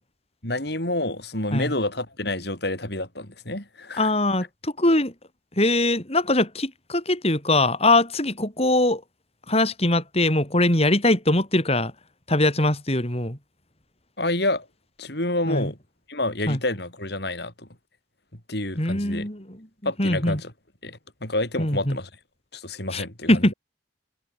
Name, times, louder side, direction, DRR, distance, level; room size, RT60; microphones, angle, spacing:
voice 1, 0.4-4.1 14.2-14.7 15.0-15.8 16.1-17.7 18.5-19.3 19.9-20.5 20.8-22.1 22.5-23.5, left 2 dB, 60° left, 7.4 m, -28 dB
voice 2, 4.0-5.1 5.6-9.0 9.5-11.9 12.3-13.4 15.5-15.7 16.5-16.6 18.8-20.4 21.6-22.0 22.9-23.5, left 1 dB, 35° left, 7.4 m, -22 dB
head